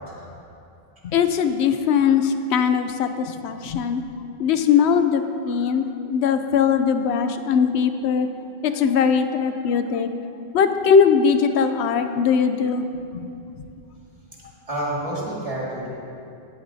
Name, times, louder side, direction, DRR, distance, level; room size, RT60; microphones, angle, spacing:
voice 1, 1.0-4.0 4.4-8.3 8.6-10.1 10.5-12.8 13.1-13.3, left 6 dB, 85° left, 9 dB, 0.9 m, -20 dB
voice 2, 14.7-15.9, right 1 dB, 35° right, -6 dB, 2.1 m, -28 dB
17.0 x 7.9 x 2.7 m, 2.6 s
omnidirectional pair, 1.1 m